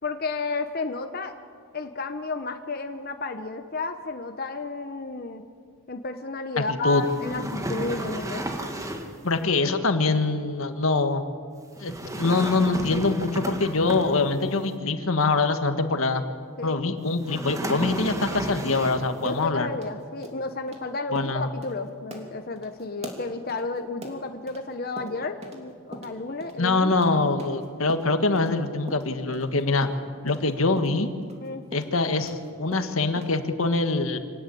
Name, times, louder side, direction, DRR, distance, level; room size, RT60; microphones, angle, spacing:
voice 1, 0.0-1.3 1.7-5.5 5.9-8.4 9.4-9.5 16.6-16.8 19.2-27.3 31.4-31.7, left 3 dB, 45° left, 6 dB, 1.0 m, -32 dB
voice 2, 6.6-7.0 9.2-11.2 11.8-16.2 16.6-19.7 21.1-21.5 26.6-29.9 30.2-31.1 31.7-34.2, left 3 dB, 80° left, 8 dB, 1.7 m, -24 dB
sound 1, 7.0-9.2 11.8-14.5 17.2-19.2, right 1 dB, 15° right, 1.8 m, -32 dB
sound 2, 17.3-18.9 19.3-19.5 19.7-19.9 20.2-20.4 20.7-20.8 21.2-21.4 21.6-21.8 22.1-24.6 25.0-25.6 25.9-28.6 28.9-32.5 32.7-33.4, right 1 dB, 30° right, 3.0 m, -41 dB
26.0 x 18.5 x 8.5 m, 2.1 s
head